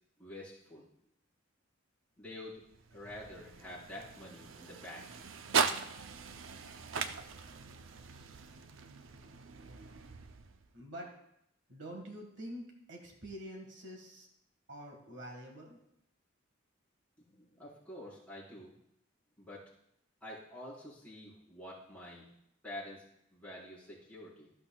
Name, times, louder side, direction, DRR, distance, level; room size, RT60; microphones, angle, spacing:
voice 1, 0.2-0.9 2.2-2.6 2.9-5.2 17.3-18.7 19.4-19.7 20.2-22.3 22.6-23.0 23.3-24.5, left 1 dB, 5° left, -8 dB, 4.3 m, -48 dB
sound 1, 2.5-10.8, right 5 dB, 80° right, 0.6 m, -39 dB
voice 2, 10.7-11.1 11.7-14.3 14.7-15.8, equal, 60° right, 1 dB, 1.7 m, -46 dB
13.5 x 11.5 x 2.3 m, 0.78 s
head